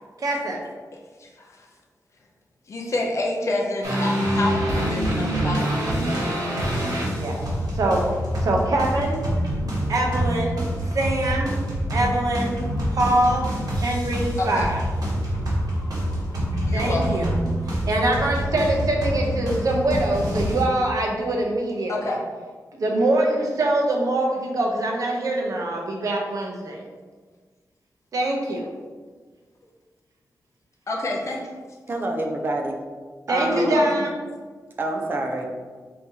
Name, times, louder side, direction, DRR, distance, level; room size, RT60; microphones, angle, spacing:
voice 1, 0.2-0.6 7.1-7.4 7.7-8.0 8.4-9.2 9.9-10.6 10.9-11.5 11.9-12.5 12.9-13.4 13.8-14.8 16.7-17.3 17.9-21.9 22.7-26.8 28.1-28.7 33.3-34.1, right 1 dB, 65° right, 0 dB, 0.8 m, -23 dB
voice 2, 1.2-1.7 2.7-5.7 14.4-14.7 16.7-17.2 21.9-22.2 30.9-31.4 33.5-34.0, left 2 dB, 50° left, -1 dB, 0.5 m, -28 dB
sound 1, 3.8-20.6, right 1 dB, 85° right, 1.3 m, -27 dB
sound 2, 7.3-20.6, equal, 75° left, 0.9 m, -32 dB
voice 3, 31.9-32.8 33.3-33.8 34.8-35.5, right 1 dB, 35° right, 2 dB, 0.5 m, -27 dB
4.3 x 3.7 x 2.8 m, 1.5 s
wide cardioid pair, 150°, 6 cm